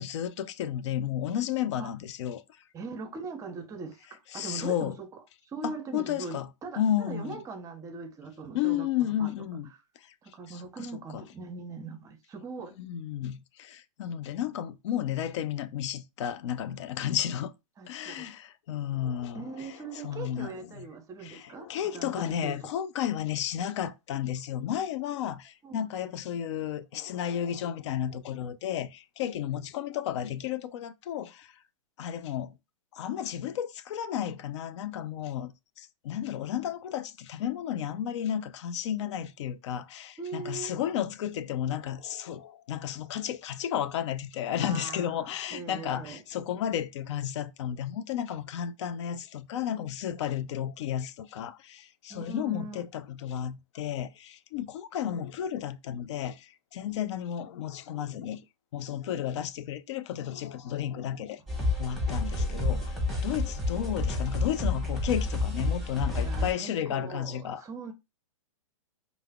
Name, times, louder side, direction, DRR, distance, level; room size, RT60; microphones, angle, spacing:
voice 1, 0.0-2.4 4.3-4.9 5.6-6.5 6.8-7.4 8.5-9.7 10.5-10.6 11.1-11.2 12.8-17.5 17.9-20.8 21.2-31.5 32.0-32.6 32.9-58.4 58.7-61.4 61.8-63.0 63.2-67.6, left 10 dB, 55° left, 0.5 m, -33 dB
voice 2, 2.7-5.1 5.4-6.8 7.1-9.3 10.2-12.8 17.8-18.3 19.3-22.7 25.6-25.9 40.2-40.7 44.6-46.2 52.1-52.8 66.2-67.9, right 4 dB, 20° right, 0.6 m, -41 dB
sound 1, 61.5-66.5, left 2 dB, ahead, 1.1 m, -29 dB
4.7 x 2.0 x 2.3 m
hypercardioid pair, 120°, 18 cm